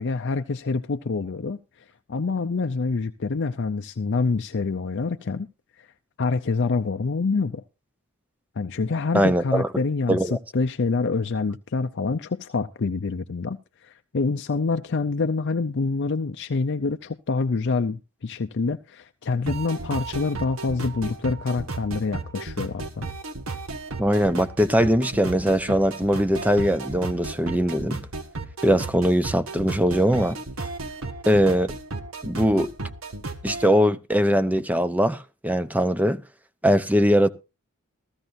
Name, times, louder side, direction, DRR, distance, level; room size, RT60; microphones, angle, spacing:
voice 1, 0.0-1.6 2.1-5.5 5.8-5.9 6.2-7.6 8.6-10.2 10.5-13.6 13.8-23.1, left 4 dB, 55° left, 0.5 m, -26 dB
voice 2, 9.1-9.8 10.1-10.4 24.0-28.1 28.6-30.4 31.3-31.7 32.2-32.7 33.4-36.2 36.6-37.3, equal, 5° right, 0.6 m, -21 dB
sound 1, 19.5-33.7, right 3 dB, 65° right, 1.5 m, -34 dB
15.5 x 14.5 x 2.6 m
head